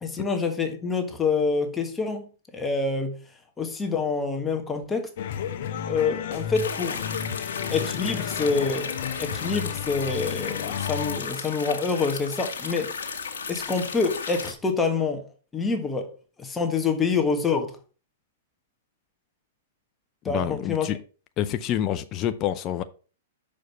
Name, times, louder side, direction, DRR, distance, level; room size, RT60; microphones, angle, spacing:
voice 1, 0.0-2.3 2.5-3.2 3.6-5.1 5.9-7.0 7.7-12.9 13.5-15.2 15.5-16.1 16.4-17.7 20.2-20.9, left 4 dB, 15° left, 1.4 m, -26 dB
sound 1, 5.2-11.2, left 8 dB, 60° left, 1.0 m, -32 dB
sound 2, 6.5-14.5, left 5 dB, 75° left, 1.7 m, -35 dB
voice 2, 20.3-21.0 21.4-22.8, left 11 dB, 35° left, 0.5 m, -27 dB
6.3 x 5.1 x 5.6 m
hypercardioid pair, 115°, 0 cm